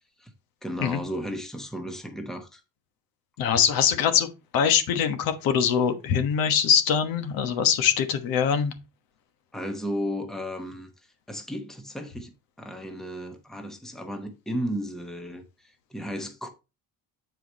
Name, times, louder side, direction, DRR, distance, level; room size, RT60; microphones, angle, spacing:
voice 1, 0.6-2.6 9.5-10.9 11.3-12.3 12.6-16.5, equal, ahead, 0.9 m, -34 dB
voice 2, 3.4-4.3 4.5-8.7, left 8 dB, 80° left, 1.2 m, -23 dB
8.0 x 4.7 x 4.1 m
cardioid pair, 165°, 35 cm